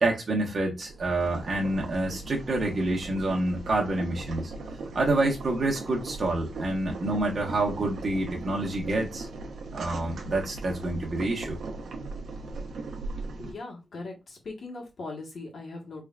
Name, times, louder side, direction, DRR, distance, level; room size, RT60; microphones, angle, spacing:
voice 1, 0.0-4.5 4.9-9.3 9.7-11.6, right 2 dB, 45° right, 1.1 m, -27 dB
Boiling, 0.8-13.5, right 3 dB, 80° right, 0.9 m, -39 dB
voice 2, 13.3-16.0, left 3 dB, 60° left, 1.5 m, -40 dB
3.7 x 3.4 x 2.4 m
wide cardioid pair, 125°, 0 cm